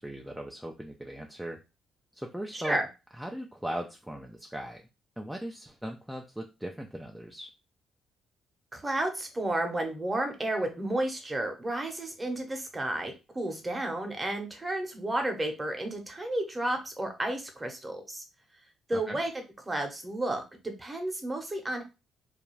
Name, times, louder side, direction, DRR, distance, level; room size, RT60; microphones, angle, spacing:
voice 1, 0.0-1.6 2.1-2.8 3.1-4.9 5.2-7.5 18.9-19.2, right 1 dB, 5° right, 1 dB, 0.4 m, -38 dB
voice 2, 2.5-2.9 8.7-18.2 18.9-19.3 19.7-21.8, right 1 dB, 20° right, 4 dB, 0.8 m, -32 dB
2.4 x 2.2 x 3.0 m, 0.27 s
cardioid pair, 90°, 0 cm